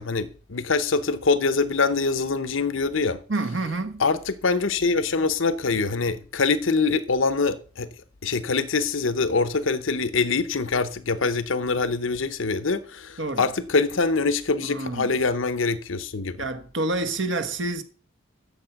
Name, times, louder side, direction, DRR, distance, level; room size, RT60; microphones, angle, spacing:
voice 1, 0.0-3.2 4.0-7.9 8.2-16.4, left 4 dB, 70° left, 0.9 m, -24 dB
voice 2, 3.3-4.0 13.2-13.5 14.6-15.1 16.4-17.8, right 2 dB, 65° right, 1.2 m, -28 dB
10.0 x 7.2 x 5.9 m
head